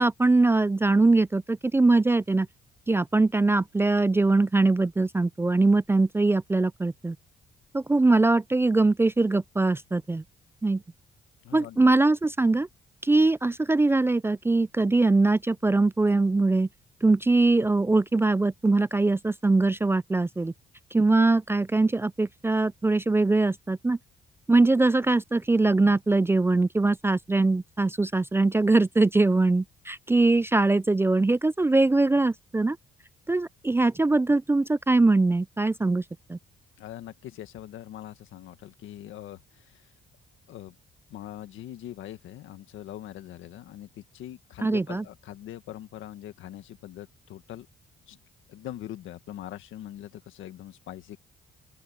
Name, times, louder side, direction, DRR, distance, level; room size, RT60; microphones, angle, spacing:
voice 1, 0.0-2.5 2.9-7.2 7.7-10.2 10.6-10.8 11.5-12.7 13.0-16.7 17.0-20.5 20.9-24.0 24.5-32.8 33.3-36.0 36.3-36.4 44.6-45.0, right 3 dB, 10° right, 0.3 m, -22 dB
voice 2, 11.4-11.9 36.8-39.9 40.5-40.8 41.1-47.7 48.1-48.2 48.5-51.2, left 12 dB, 85° left, 1.8 m, -42 dB
open air
cardioid pair, 90°, 20 cm